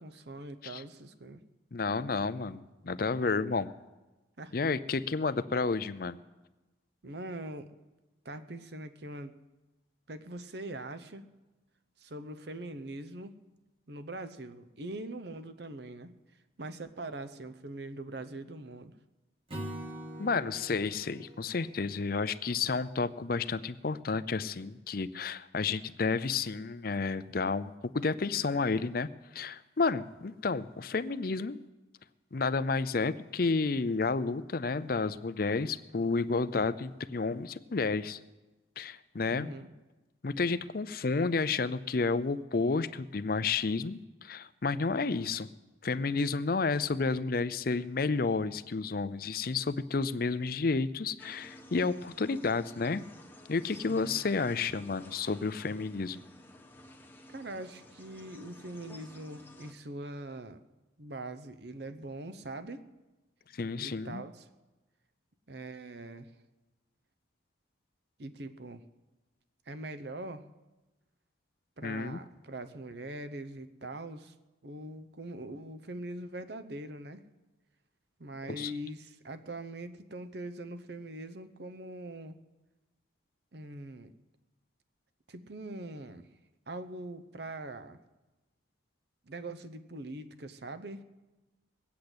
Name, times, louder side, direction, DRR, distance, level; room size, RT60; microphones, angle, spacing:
voice 1, 0.0-1.4 4.4-4.6 7.0-7.7 8.2-9.3 10.1-11.2 12.0-13.3 13.9-16.1 16.6-18.9 39.3-39.7 53.9-54.3 57.3-60.6 61.0-62.9 63.8-64.5 65.5-66.3 68.2-68.8 69.7-70.4 71.8-74.3 74.6-77.2 78.2-82.4 83.5-84.1 85.3-86.3 86.7-88.0 89.3-91.0, right 1 dB, 55° right, 11 dB, 0.9 m, -42 dB
voice 2, 1.7-3.7 4.5-6.2 20.2-31.6 32.3-38.2 38.8-39.5 40.2-45.5 45.8-53.0 53.5-56.2 63.5-64.2 71.8-72.2 78.6-78.7, left 4 dB, 50° left, 15 dB, 0.5 m, -31 dB
Acoustic guitar / Strum, 19.5-22.8, right 1 dB, 30° right, 1.9 m, -44 dB
sound 1, 51.2-59.7, left 1 dB, 10° left, 1.1 m, -53 dB
21.0 x 8.6 x 8.0 m, 1.1 s
head